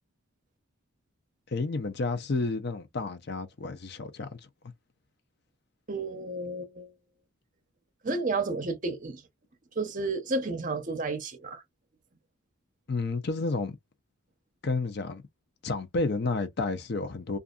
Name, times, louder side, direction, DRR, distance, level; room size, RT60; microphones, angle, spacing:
voice 1, 1.5-4.4 12.9-13.8 14.6-15.2 15.6-17.4, left 3 dB, 50° left, 0.6 m, -31 dB
voice 2, 5.9-6.9 8.0-9.2 9.8-11.6, right 3 dB, 40° right, 0.7 m, -31 dB
2.6 x 2.4 x 2.4 m
head